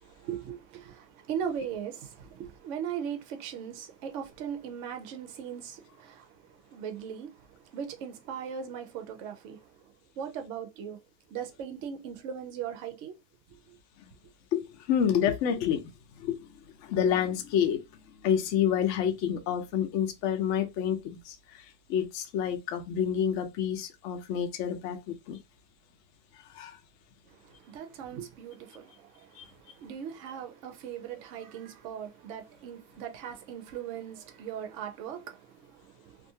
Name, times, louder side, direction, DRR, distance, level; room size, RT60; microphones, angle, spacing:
voice 1, 0.0-9.7 10.2-11.0 11.3-13.1 13.7-13.8 27.3-36.3, right 8 dB, 65° right, 0.8 m, -39 dB
voice 2, 14.5-15.9 16.2-16.4 16.8-17.8 18.2-21.6 21.9-25.4 26.5-26.8 29.4-29.5, left 9 dB, 65° left, 0.8 m, -28 dB
2.7 x 2.5 x 2.7 m
omnidirectional pair, 1.7 m